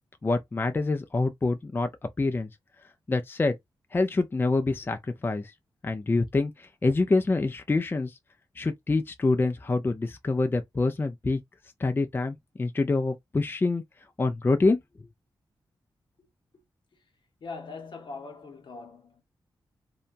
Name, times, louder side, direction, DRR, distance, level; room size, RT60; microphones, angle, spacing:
voice 1, 0.2-1.9 2.2-2.5 3.1-3.6 3.9-5.5 5.8-8.1 8.6-11.4 11.8-13.8 14.2-14.8, left 3 dB, 25° left, 0.4 m, -26 dB
voice 2, 17.4-19.2, left 4 dB, 70° left, 0.9 m, -41 dB
2.8 x 2.2 x 2.5 m
cardioid pair, 75°, 9 cm